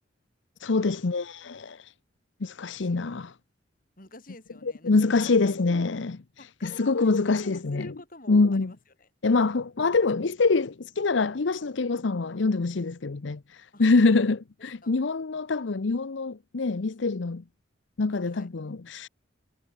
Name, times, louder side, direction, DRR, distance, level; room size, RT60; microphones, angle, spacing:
voice 1, 0.6-1.9 2.4-3.3 4.6-6.2 6.6-7.9 8.3-8.7 9.2-17.4 18.0-19.1, left 3 dB, 80° left, 0.7 m, -25 dB
voice 2, 4.0-5.5 6.4-7.1 7.4-9.1 13.7-13.8 14.8-15.0 18.2-18.5, left 2 dB, 45° left, 5.3 m, -47 dB
head